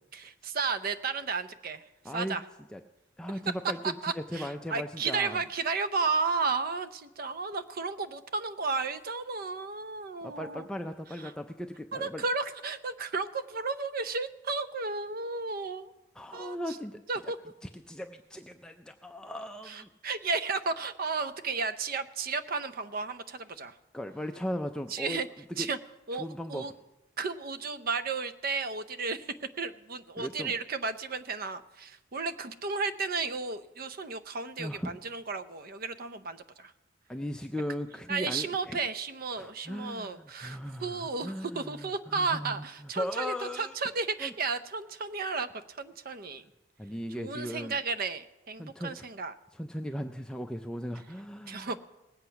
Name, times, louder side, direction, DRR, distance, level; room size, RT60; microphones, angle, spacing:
voice 1, 0.1-1.8 2.1-2.4 4.0-10.7 11.9-15.9 16.3-16.8 17.1-17.4 19.7-23.7 24.9-25.3 25.6-25.8 26.1-26.7 27.2-36.7 38.1-46.4 47.2-49.3 51.5-51.8, right 4 dB, 50° right, 11 dB, 0.6 m, -33 dB
voice 2, 2.0-2.4 2.7-2.8 3.2-5.4 10.2-12.2 16.1-17.3 17.6-19.9 23.9-25.2 25.6-25.7 26.1-26.7 30.2-30.6 34.6-34.9 37.1-38.8 39.4-42.6 42.9-43.8 44.2-44.3 46.8-47.7 48.6-49.1 49.5-51.8, equal, 5° left, 5 dB, 0.4 m, -37 dB
19.0 x 8.1 x 5.7 m, 1.0 s
head